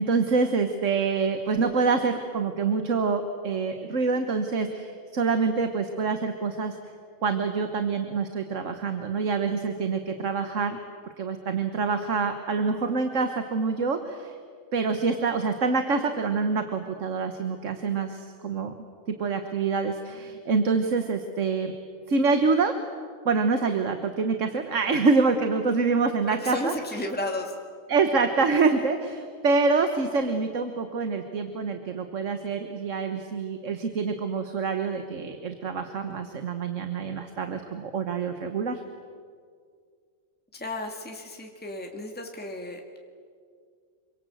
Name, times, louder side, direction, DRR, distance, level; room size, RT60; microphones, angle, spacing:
voice 1, 0.0-6.8 7.2-10.8 11.2-14.3 14.7-18.7 19.1-21.7 22.1-22.7 23.2-27.1 27.9-38.8, right 4 dB, 75° right, 7 dB, 1.6 m, -26 dB
voice 2, 26.3-27.5 40.5-43.0, left 1 dB, 5° left, 2 dB, 2.0 m, -33 dB
27.0 x 24.0 x 7.9 m, 2.1 s
omnidirectional pair, 1.3 m